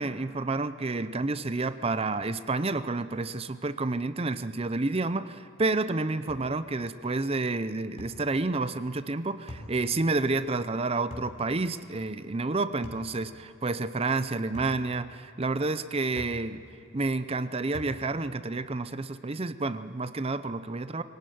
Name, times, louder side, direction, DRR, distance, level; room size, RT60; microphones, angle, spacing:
voice 1, 0.0-16.6 16.9-21.0, right 3 dB, 25° right, 13 dB, 0.6 m, -29 dB
sound 1, 6.3-6.5 8.0-8.2 9.5-9.7 11.1-11.4 12.8-13.1 14.5-14.8 16.2-16.4 17.7-18.0, left 1 dB, 30° left, 3.7 m, -41 dB
23.5 x 18.0 x 9.3 m, 2.7 s
head